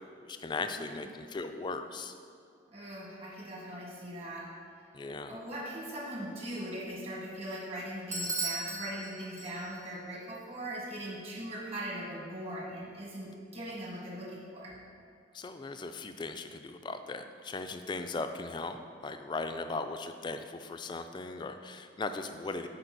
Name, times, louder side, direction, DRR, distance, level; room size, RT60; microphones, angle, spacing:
voice 1, 0.2-2.1 4.9-5.4 15.3-22.7, left 3 dB, 25° left, 8 dB, 0.3 m, -38 dB
voice 2, 0.7-1.1 2.7-4.5 5.3-14.8, right 1 dB, 35° right, -4 dB, 1.6 m, -40 dB
Bell / Doorbell, 8.1-10.0, right 3 dB, 15° right, 0.7 m, -37 dB
6.7 x 4.7 x 5.9 m, 2.4 s
head